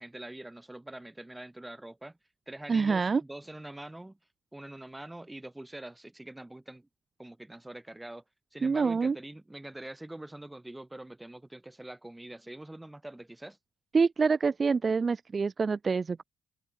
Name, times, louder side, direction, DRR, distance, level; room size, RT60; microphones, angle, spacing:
voice 1, 0.0-2.2 2.5-4.2 4.5-6.9 7.2-8.2 8.5-13.6, right 1 dB, 10° right, 5.1 m, -44 dB
voice 2, 2.7-3.2 8.6-9.2 13.9-16.2, right 5 dB, 35° right, 0.4 m, -26 dB
cardioid pair, 90°, 0 cm